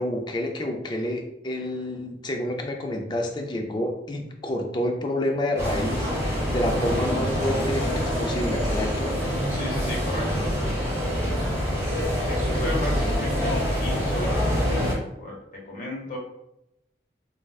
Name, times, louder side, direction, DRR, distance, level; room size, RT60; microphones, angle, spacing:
voice 1, 0.0-9.2, left 1 dB, 25° left, 3 dB, 0.4 m, -29 dB
sound 1, 5.6-14.9, equal, 15° right, 0.8 m, -25 dB
voice 2, 9.5-10.5 12.3-15.4 15.6-16.2, left 1 dB, 45° left, -2 dB, 0.9 m, -34 dB
4.6 x 2.0 x 2.3 m, 0.84 s
head